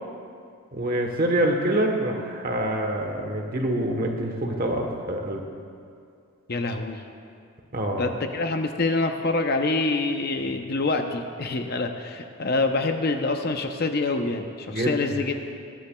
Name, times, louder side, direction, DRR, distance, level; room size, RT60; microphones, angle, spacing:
voice 1, 0.7-5.4 7.7-8.1 14.7-15.1, right 1 dB, 40° right, 2 dB, 1.1 m, -26 dB
voice 2, 6.5-7.0 8.0-15.3, left 3 dB, 45° left, 5 dB, 0.7 m, -26 dB
21.0 x 10.0 x 2.3 m, 2.4 s
head